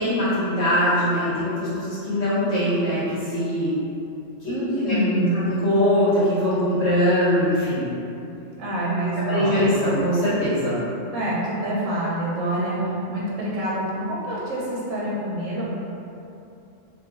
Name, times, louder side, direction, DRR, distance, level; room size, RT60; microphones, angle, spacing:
voice 1, 0.0-3.8 4.4-5.0 5.3-7.9 9.0-10.8, equal, 90° left, -12 dB, 1.6 m, -22 dB
voice 2, 4.5-5.4 8.6-9.7 11.1-12.8 13.1-15.6, right 1 dB, 90° right, -6 dB, 1.1 m, -26 dB
3.0 x 2.6 x 3.6 m, 2.8 s
omnidirectional pair, 1.3 m